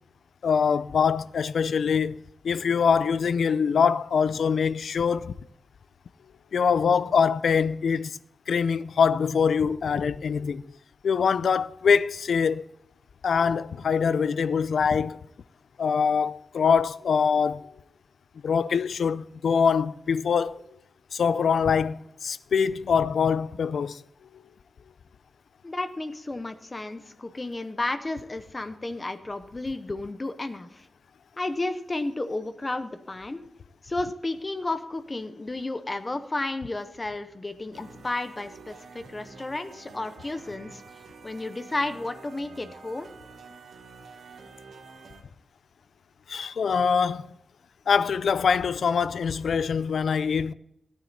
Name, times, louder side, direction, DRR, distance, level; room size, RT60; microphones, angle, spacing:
voice 1, 0.4-5.3 6.5-8.2 8.5-10.6 11.0-12.6 13.2-15.2 15.8-17.7 18.4-20.6 21.1-24.0 46.3-47.3 47.9-50.5, left 6 dB, 75° left, 0.4 m, -24 dB
voice 2, 25.6-30.9 31.4-33.5 33.8-40.8 41.2-43.1, left 2 dB, 20° left, 0.7 m, -32 dB
sound 1, 37.7-45.2, right 4 dB, 85° right, 1.3 m, -48 dB
13.5 x 9.2 x 4.0 m
wide cardioid pair, 175°, 0 cm